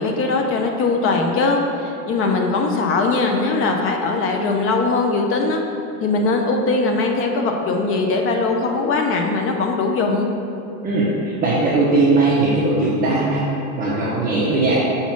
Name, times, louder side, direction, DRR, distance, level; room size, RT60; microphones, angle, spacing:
voice 1, 0.0-5.6 6.0-10.3, left 3 dB, 30° left, 3 dB, 0.6 m, -20 dB
voice 2, 10.8-13.5 13.8-14.8, right 2 dB, 20° right, -8 dB, 1.0 m, -19 dB
5.1 x 4.2 x 5.9 m, 2.8 s
supercardioid pair, 130°, 45 cm